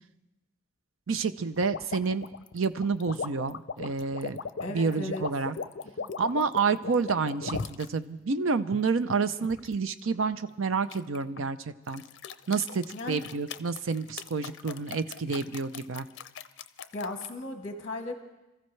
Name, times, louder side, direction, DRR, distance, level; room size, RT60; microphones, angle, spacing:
voice 1, 1.1-2.3 2.5-4.4 4.7-5.5 6.2-12.0 12.5-16.1, right 4 dB, 80° right, 12 dB, 0.6 m, -29 dB
sound 1, 1.6-7.9 8.5-9.8 10.9-11.5 11.9-17.3, left 5 dB, 60° left, 0.6 m, -38 dB
voice 2, 4.6-5.2 6.0-6.1 12.9-13.2 16.9-18.1, left 2 dB, 35° left, 4 dB, 1.1 m, -36 dB
27.0 x 14.5 x 3.2 m, 0.99 s
head